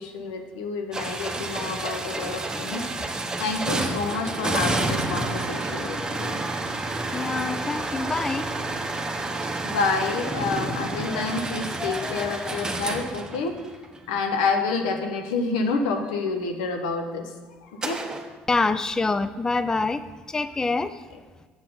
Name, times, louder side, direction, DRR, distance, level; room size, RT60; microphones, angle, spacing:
voice 1, 0.0-6.4 9.6-13.5 14.1-17.3 17.6-18.2, left 4 dB, 85° left, 4 dB, 0.9 m, -28 dB
sound 1, 0.9-14.0 17.8-18.3, right 2 dB, 20° right, 0.9 m, -29 dB
voice 2, 7.1-8.6 11.1-11.5 11.8-12.6 18.5-21.0, left 3 dB, 15° left, 13 dB, 0.3 m, -27 dB
7.1 x 5.7 x 3.9 m, 1.4 s
supercardioid pair, 75°, 4 cm